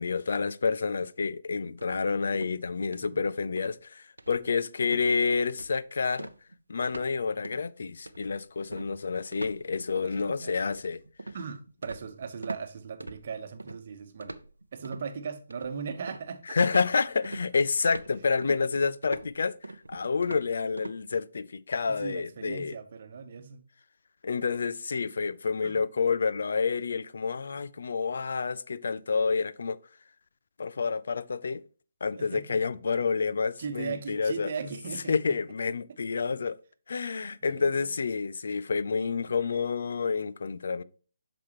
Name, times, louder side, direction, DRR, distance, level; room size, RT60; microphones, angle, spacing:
voice 1, 0.0-6.3 6.7-11.0 16.5-19.5 19.9-22.8 24.2-29.8 30.6-31.6 32.0-34.5 35.1-36.6 36.9-40.8, left 5 dB, 60° left, 0.5 m, -29 dB
sound 1, 1.8-2.6 2.9-3.2 3.6-3.8 4.2-4.6 4.8-5.1 5.5-5.8 6.2-7.1 7.4-7.7 8.1-12.7 13.0-13.8 14.2-15.1 15.5-16.3 16.7-21.0, right 2 dB, 85° right, 0.6 m, -43 dB
voice 2, 10.0-10.8 11.3-14.4 14.7-16.6 21.8-23.6 25.6-25.8 32.1-32.6 32.9-33.0 33.6-35.4 37.4-37.9, right 6 dB, 45° right, 1.0 m, -38 dB
8.4 x 6.0 x 3.0 m
figure-of-eight pair, 145°, 0 cm